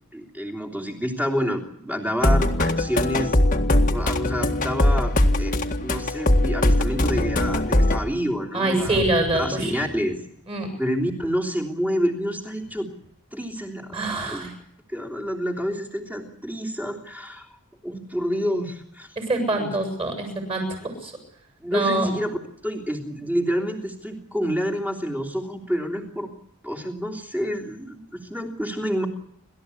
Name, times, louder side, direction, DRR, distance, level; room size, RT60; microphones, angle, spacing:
voice 1, 0.1-3.3 3.9-9.0 9.4-10.2 10.8-12.9 13.3-14.5 14.9-17.5 17.8-19.1 19.6-19.8 21.6-22.4 22.6-26.3 26.6-29.1, equal, 5° right, 2 dB, 3.3 m, -28 dB
sound 1, 2.2-8.0, left 1 dB, 35° left, 1.8 m, -20 dB
voice 2, 8.5-9.7 10.5-10.7 13.9-14.5 19.2-21.1 21.7-22.1, right 2 dB, 25° right, 5 dB, 7.4 m, -25 dB
sound 2, 8.5-13.1, equal, 60° right, 6.9 m, -41 dB
29.5 x 14.0 x 8.5 m, 0.73 s
head